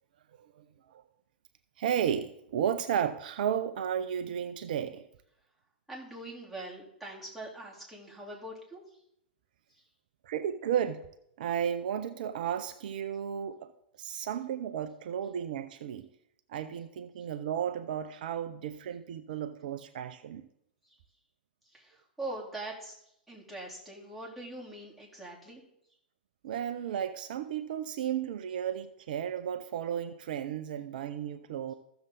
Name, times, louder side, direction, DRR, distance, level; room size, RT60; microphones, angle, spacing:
voice 1, 0.6-1.0 1.8-5.0 10.2-11.0 11.4-13.7 14.0-16.1 16.5-20.4 26.4-31.7, right 9 dB, 60° right, 0.6 m, -33 dB
voice 2, 5.9-8.8 21.7-23.0 23.3-25.6, right 2 dB, ahead, 3.5 m, -42 dB
14.5 x 6.9 x 4.0 m
hypercardioid pair, 105°, 5 cm